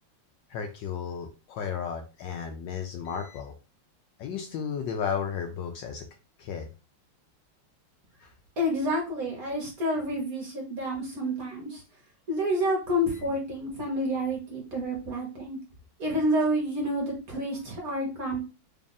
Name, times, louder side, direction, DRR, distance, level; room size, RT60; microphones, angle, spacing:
voice 1, 0.5-3.5 4.2-6.0 6.4-6.7 8.2-8.3, left 7 dB, 75° left, 4 dB, 1.1 m, -33 dB
voice 2, 8.6-11.8 12.3-15.6 16.0-18.4, equal, 50° right, 0 dB, 1.3 m, -29 dB
3.5 x 2.4 x 3.9 m, 0.31 s
omnidirectional pair, 2.3 m